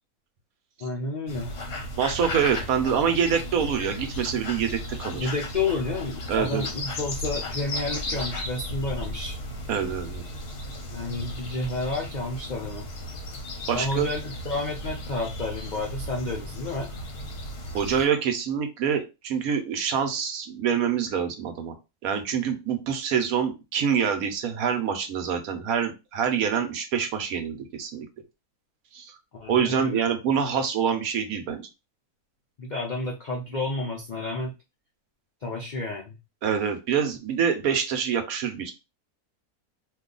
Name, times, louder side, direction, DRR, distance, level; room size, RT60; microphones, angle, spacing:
voice 1, 0.8-1.5 5.1-9.4 10.9-12.9 13.7-16.9 29.3-30.1 32.6-34.5 35.4-36.2, left 3 dB, 75° left, 0 dB, 0.4 m, -30 dB
sound 1, 1.3-18.1, left 1 dB, 50° left, 0.8 m, -35 dB
voice 2, 2.0-5.3 6.3-6.7 9.7-10.2 13.7-14.1 17.7-21.7 22.0-28.1 28.9-29.1 29.5-31.7 36.4-38.7, right 7 dB, 70° right, 6 dB, 1.1 m, -26 dB
2.7 x 2.3 x 3.8 m, 0.26 s
omnidirectional pair, 1.6 m